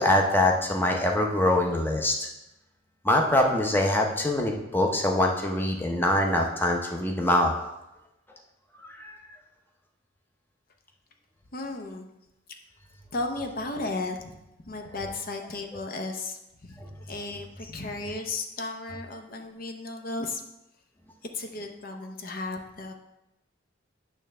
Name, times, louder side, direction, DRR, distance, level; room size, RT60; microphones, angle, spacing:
voice 1, 0.0-2.3 3.0-7.5 8.9-9.2 16.8-16.9, left 1 dB, 10° left, 1 dB, 0.7 m, -24 dB
voice 2, 11.5-12.1 13.1-14.3 14.7-20.4 21.3-22.9, left 2 dB, 50° left, 4 dB, 0.7 m, -34 dB
8.8 x 3.4 x 6.6 m, 0.91 s
head